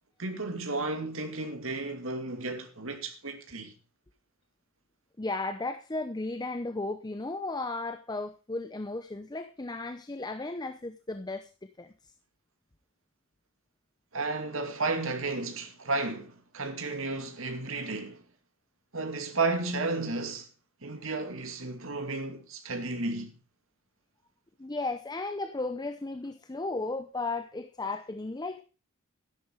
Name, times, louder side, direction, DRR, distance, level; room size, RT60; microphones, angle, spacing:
voice 1, 0.2-3.7 14.1-18.2 18.9-20.5 20.8-23.3, right 3 dB, 70° right, 2.5 m, -33 dB
voice 2, 5.2-11.5 11.8-11.9 24.6-28.6, left 2 dB, 20° left, 0.7 m, -35 dB
12.5 x 11.5 x 4.7 m
head